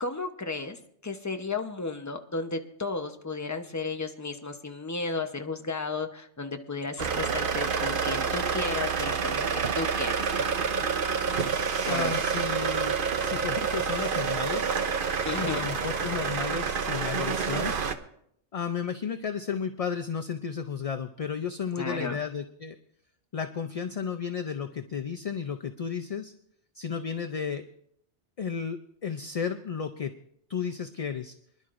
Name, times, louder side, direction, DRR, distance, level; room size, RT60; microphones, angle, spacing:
voice 1, 0.0-10.1 11.9-12.2 15.2-15.6 21.8-22.2, left 3 dB, 15° left, 5 dB, 0.8 m, -33 dB
sound 1, 7.0-17.9, right 6 dB, 55° right, 0.9 m, -28 dB
voice 2, 11.9-14.7 15.4-17.7 18.5-22.8 23.3-26.3 26.7-27.6 28.4-30.1 30.5-31.3, left 6 dB, 45° left, 8 dB, 0.5 m, -33 dB
24.0 x 11.5 x 2.5 m, 0.70 s
omnidirectional pair, 1.2 m